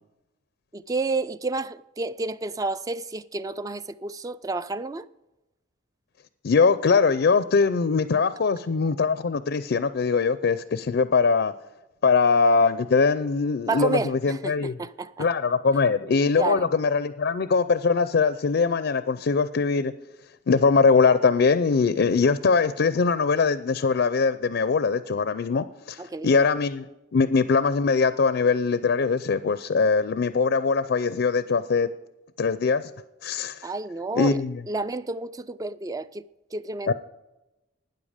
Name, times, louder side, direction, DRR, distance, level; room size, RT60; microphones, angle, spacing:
voice 1, 0.7-5.1 13.7-15.3 16.4-16.7 26.0-26.4 33.6-34.4 34.7-36.3 36.5-36.9, right 3 dB, 20° right, 0.3 m, -30 dB
voice 2, 6.4-11.5 12.0-14.7 15.2-19.9 20.5-26.8 27.1-31.9 32.4-32.9 33.2-33.7 34.2-34.6 36.9-37.0, left 4 dB, 60° left, 0.4 m, -22 dB
12.5 x 9.3 x 5.0 m
head